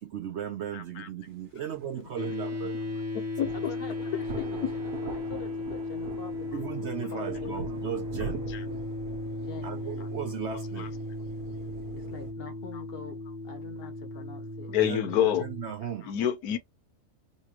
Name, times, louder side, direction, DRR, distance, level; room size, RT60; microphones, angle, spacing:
voice 1, 0.0-2.7 6.5-8.5 9.6-11.0 14.8-15.0 15.4-16.1, right 9 dB, 65° right, 0.7 m, -36 dB
voice 2, 0.7-1.1 3.1-3.8 4.6-4.7 8.5-8.7 10.5-10.9 12.7-12.8 14.7-15.5 15.8-16.6, left 10 dB, 75° left, 1.2 m, -29 dB
sound 1, 2.2-15.7, left 2 dB, 20° right, 0.4 m, -36 dB
sound 2, 3.4-12.3, right 4 dB, 85° right, 1.3 m, -43 dB
voice 3, 3.5-6.8 7.1-7.6 9.4-9.9 11.9-14.7 15.0-15.2, left 6 dB, 50° left, 0.8 m, -45 dB
4.1 x 2.3 x 2.9 m
omnidirectional pair, 1.6 m